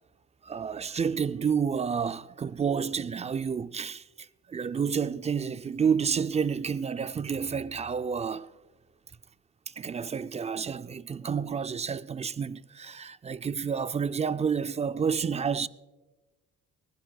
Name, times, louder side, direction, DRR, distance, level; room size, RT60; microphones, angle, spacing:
voice 1, 0.4-4.0 4.5-8.5 9.8-15.7, right 6 dB, 25° right, 0.3 m, -29 dB
20.5 x 16.0 x 2.2 m
cardioid pair, 90°, 30 cm